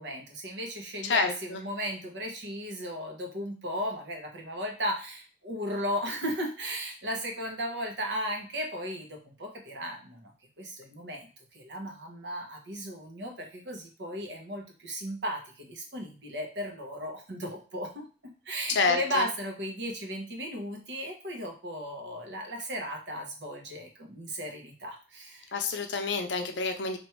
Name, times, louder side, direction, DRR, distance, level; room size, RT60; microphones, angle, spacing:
voice 1, 0.0-10.3 10.6-25.5, equal, 70° right, 2 dB, 0.9 m, -36 dB
voice 2, 1.0-1.6 18.7-19.3 25.5-27.0, left 4 dB, 80° left, 6 dB, 0.6 m, -28 dB
3.1 x 2.5 x 4.4 m, 0.36 s
head